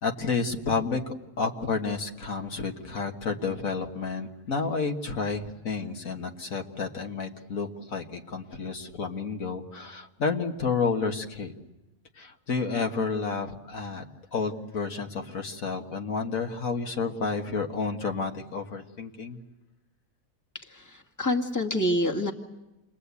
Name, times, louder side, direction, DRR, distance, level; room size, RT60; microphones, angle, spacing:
voice 1, 0.0-11.5 12.2-14.0 14.3-19.4, left 4 dB, 60° left, 4 dB, 2.0 m, -30 dB
voice 2, 20.5-22.3, left 1 dB, 10° left, 2 dB, 1.8 m, -27 dB
29.0 x 22.0 x 8.4 m, 1.0 s
omnidirectional pair, 1.6 m